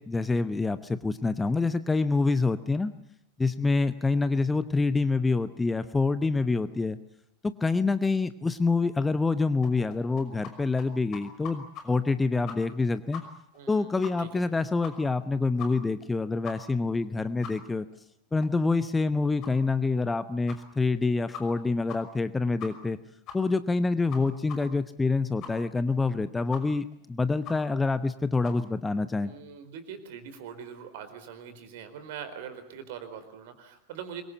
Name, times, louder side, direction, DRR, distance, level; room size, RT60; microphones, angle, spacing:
voice 1, 0.0-2.9 3.4-7.0 7.6-13.2 13.7-17.8 18.3-23.0 23.3-29.3, left 3 dB, 10° left, 13 dB, 1.0 m, -26 dB
sound 1, 9.6-10.5 10.8-10.9 11.1-11.8 12.1-12.2 12.5-12.8 13.1-13.2 13.5-13.6 14.0-14.1 14.4-14.5 14.8-15.2 15.6-15.7 16.0-16.1 16.4-16.5 16.9-17.0 17.4-17.5 17.9-18.0 18.4-18.5 18.9-19.0 19.4-19.5 20.0-20.1 20.5-20.6 21.0-21.1 21.3-21.6 21.9-22.0 22.2-22.3 22.6-22.9 23.3-23.4 23.7-23.8 24.1-24.2 24.5-24.6 24.9-25.0 25.4-25.5 25.9-26.0 26.5-26.6 26.9-27.0 27.4-27.5 27.9-28.0 28.4-28.6, left 8 dB, 35° left, 5.7 m, -41 dB
voice 2, 13.5-14.4 29.2-34.2, right 8 dB, 50° right, 10 dB, 4.3 m, -42 dB
26.0 x 23.0 x 8.1 m, 0.73 s
figure-of-eight pair, 90°, 0 cm